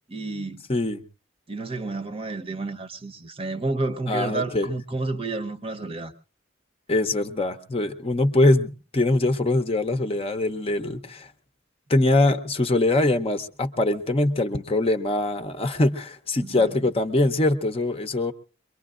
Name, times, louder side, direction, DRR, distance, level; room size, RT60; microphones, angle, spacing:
voice 1, 0.1-0.6 1.5-6.1 16.4-16.7, right 3 dB, 30° right, 0.8 m, -30 dB
voice 2, 0.7-1.0 4.1-4.7 6.9-11.3 11.9-18.3, left 2 dB, 30° left, 0.7 m, -23 dB
23.5 x 22.5 x 2.5 m
head